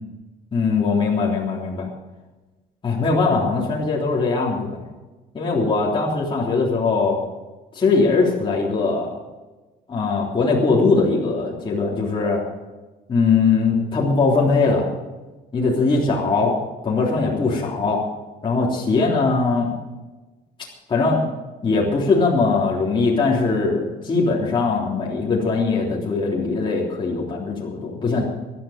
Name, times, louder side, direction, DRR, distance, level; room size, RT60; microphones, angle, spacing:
voice 1, 0.5-1.9 2.8-4.8 5.3-7.2 7.7-9.2 9.9-12.4 13.1-14.9 15.5-16.5 16.8-18.0 18.4-19.8 20.9-21.3 21.6-28.2, left 4 dB, 30° left, -5 dB, 3.5 m, -20 dB
17.0 x 12.5 x 5.2 m, 1.2 s
cardioid pair, 110°, 17 cm